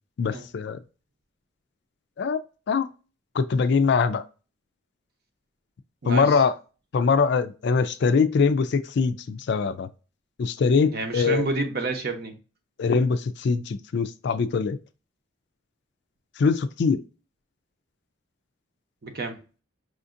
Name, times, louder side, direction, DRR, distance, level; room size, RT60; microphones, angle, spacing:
voice 1, 0.2-0.8 2.2-2.4 2.7-2.9 3.3-4.2 6.1-6.5 6.9-9.9 10.4-11.5 12.8-14.8 16.4-17.0, left 5 dB, 55° left, 0.3 m, -22 dB
voice 2, 6.0-6.4 10.9-12.3 19.0-19.4, right 3 dB, 50° right, 0.8 m, -29 dB
4.9 x 2.6 x 2.5 m
head